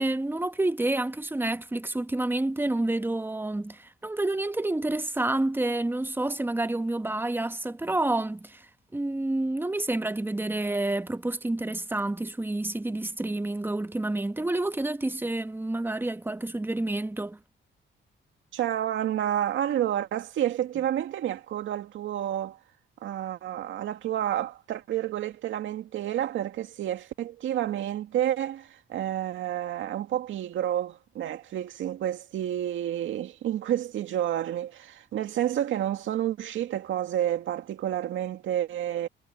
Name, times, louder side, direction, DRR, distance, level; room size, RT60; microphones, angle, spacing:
voice 1, 0.0-8.7 8.9-17.4, right 2 dB, 10° right, 1.1 m, -29 dB
voice 2, 18.5-22.6 23.0-39.1, right 11 dB, 75° right, 2.2 m, -30 dB
cardioid pair, 90°, 20 cm